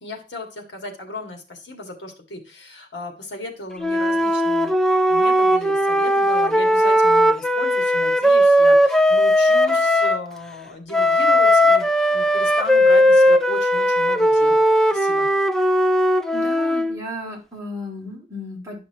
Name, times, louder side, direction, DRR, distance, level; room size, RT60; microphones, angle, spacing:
voice 1, 0.0-4.7 5.1-14.6 14.9-15.3, left 1 dB, 70° left, 3 dB, 2.0 m, -35 dB
Wind instrument woodwind instrument, 3.8-10.2 10.9-17.0, equal, 5° left, 0.4 m, -17 dB
voice 2, 16.3-18.8, left 1 dB, 15° right, -3 dB, 2.6 m, -34 dB
10.5 x 5.8 x 2.9 m, 0.32 s
head